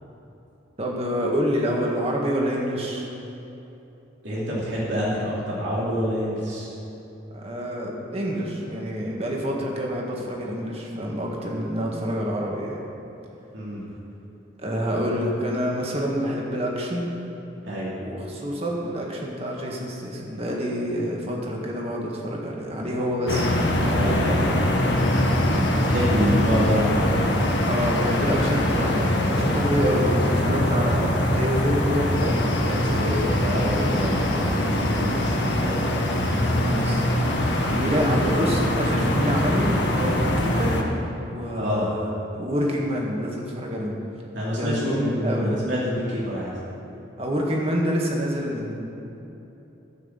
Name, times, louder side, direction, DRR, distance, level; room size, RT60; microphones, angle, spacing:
voice 1, 0.8-3.1 7.3-12.8 14.6-17.1 18.0-24.0 27.7-32.4 34.4-35.0 36.2-37.1 37.7-40.8 41.2-44.0 44.5-45.6 47.2-48.8, equal, 30° right, -2 dB, 1.7 m, -27 dB
voice 2, 4.2-6.7 13.5-13.8 17.6-17.9 23.9-24.4 25.5-27.3 29.4-29.6 32.6-36.0 41.5-41.9 44.3-46.5, equal, 75° right, -7 dB, 2.9 m, -27 dB
sound 1, 23.3-40.8, left 1 dB, 65° left, 1.4 m, -23 dB
15.0 x 6.1 x 7.4 m, 3.0 s
head